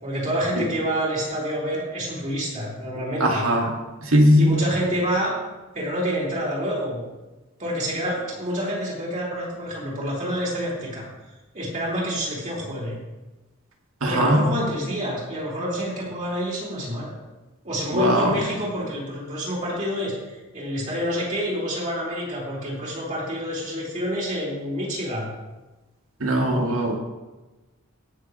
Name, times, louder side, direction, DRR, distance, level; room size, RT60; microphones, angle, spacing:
voice 1, 0.0-3.5 4.0-5.3 5.7-7.0 7.6-11.1 11.5-13.0 14.1-17.2 17.6-25.3, equal, 35° right, -5 dB, 3.8 m, -28 dB
voice 2, 3.2-3.7 4.0-4.5 14.0-14.5 17.9-18.4 26.2-27.0, equal, 75° right, 0 dB, 2.1 m, -19 dB
18.0 x 6.8 x 3.2 m, 1.1 s
head